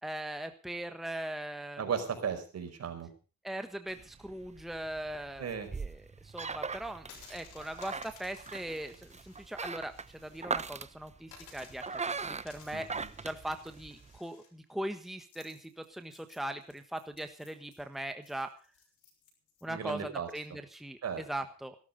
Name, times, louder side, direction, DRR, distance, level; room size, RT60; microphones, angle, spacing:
voice 1, 0.0-1.8 3.4-12.9 13.2-18.5 19.6-21.8, right 1 dB, ahead, 7 dB, 1.4 m, -40 dB
voice 2, 1.8-3.1 5.4-5.7 12.7-13.1 19.7-20.3 21.0-21.2, right 7 dB, 55° right, 6 dB, 5.0 m, -36 dB
sound 1, 3.9-14.2, right 4 dB, 20° right, 0.9 m, -41 dB
sound 2, 7.0-10.4 10.7-10.8 11.3-19.6, left 5 dB, 90° left, 6.5 m, -58 dB
17.0 x 12.5 x 5.3 m, 0.37 s
cardioid pair, 90°, 30 cm